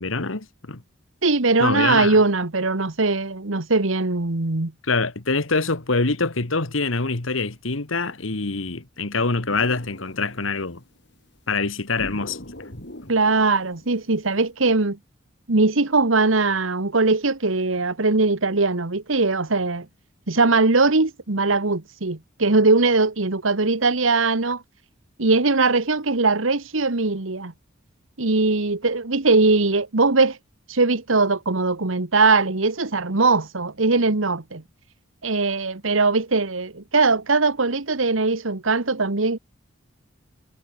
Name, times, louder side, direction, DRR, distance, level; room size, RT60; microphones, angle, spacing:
voice 1, 0.0-0.8 1.6-2.2 4.9-10.8 11.5-12.4, left 3 dB, 80° left, 1.8 m, -25 dB
voice 2, 1.2-4.7 13.1-15.0 15.5-19.9 20.3-24.6 25.2-27.5 28.2-30.4 30.7-34.6 35.2-39.4, right 3 dB, 85° right, 1.5 m, -20 dB
sound 1, 9.5-11.0 12.0-14.4, left 1 dB, 60° left, 4.4 m, -41 dB
head